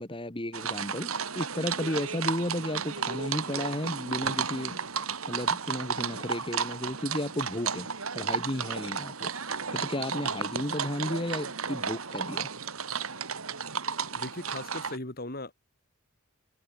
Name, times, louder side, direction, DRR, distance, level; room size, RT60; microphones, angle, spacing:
voice 1, 0.0-7.9 8.1-9.3 9.7-12.5, left 1 dB, 25° left, 2.7 m, -33 dB
sound 1, 0.5-15.0, right 6 dB, 80° right, 2.9 m, -33 dB
voice 2, 14.2-15.5, left 2 dB, 45° left, 4.2 m, -38 dB
head